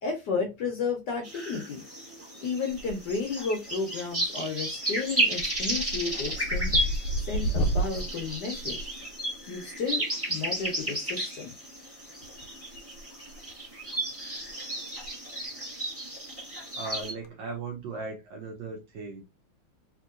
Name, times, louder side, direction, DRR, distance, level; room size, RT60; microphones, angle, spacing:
voice 1, 0.0-1.8 2.4-6.7 7.3-8.8 9.5-11.5, left 4 dB, 65° left, 1.1 m, -32 dB
sound 1, 1.2-17.1, right 1 dB, 10° right, 0.7 m, -33 dB
sound 2, 2.7-3.3 3.6-4.1 4.5-4.8 5.1-9.5 10.9-11.0 12.2-13.0 13.3-13.5 14.1-14.2 14.4-14.5 14.9-15.1 15.4-15.5 17.0-17.3, right 1 dB, 90° left, 1.6 m, -32 dB
voice 2, 16.8-19.2, right 3 dB, 70° right, 1.3 m, -37 dB
3.6 x 2.9 x 2.4 m
omnidirectional pair, 2.4 m